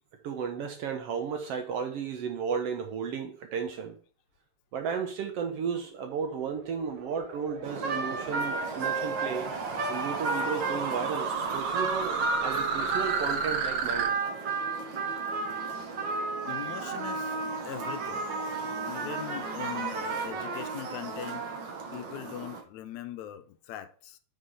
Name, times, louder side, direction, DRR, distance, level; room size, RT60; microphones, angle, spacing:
voice 1, 0.2-4.0 4.7-9.5 9.9-14.1 15.7-15.9, right 6 dB, 65° right, 1.7 m, -34 dB
sound 1, 6.0-14.1, right 5 dB, 90° right, 2.7 m, -33 dB
sound 2, 7.6-22.6, right 4 dB, 50° right, 1.5 m, -33 dB
voice 2, 16.5-17.4 17.6-18.3 18.8-21.5 21.9-24.2, left 12 dB, 80° left, 2.0 m, -41 dB
6.7 x 5.4 x 5.6 m
omnidirectional pair, 3.4 m